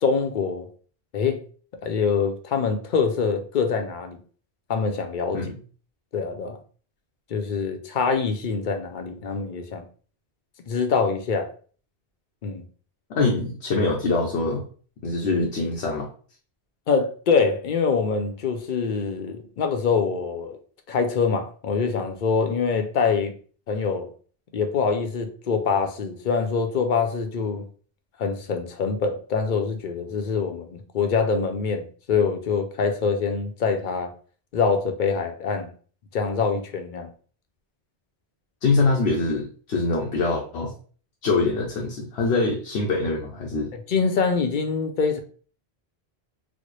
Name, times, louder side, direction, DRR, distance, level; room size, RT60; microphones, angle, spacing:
voice 1, 0.0-0.7 1.1-1.4 1.8-4.2 4.7-5.4 6.1-6.6 7.3-9.8 10.7-11.5 12.4-12.6 16.9-20.6 20.9-23.3 23.7-24.1 24.5-27.7 28.2-34.1 34.5-35.7 36.1-37.1 43.9-45.2, left 5 dB, 60° left, 0.6 m, -24 dB
voice 2, 13.1-14.6 15.0-16.1 38.6-40.7 41.2-43.7, left 3 dB, 90° left, 0.9 m, -24 dB
4.2 x 2.0 x 3.0 m
omnidirectional pair, 1.1 m